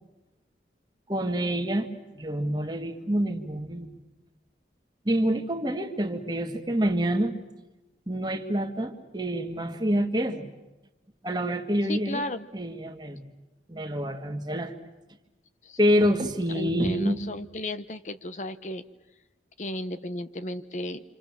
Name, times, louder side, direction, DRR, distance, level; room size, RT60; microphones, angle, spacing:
voice 1, 1.1-1.9 2.1-4.0 5.1-7.3 8.1-10.5 11.2-12.3 12.5-13.2 13.7-14.7 15.8-17.2, equal, 25° right, 6 dB, 1.8 m, -27 dB
voice 2, 11.9-12.5 15.6-15.8 16.5-18.8 19.6-21.0, left 1 dB, 40° left, 11 dB, 0.8 m, -34 dB
27.0 x 27.0 x 7.3 m, 1.0 s
head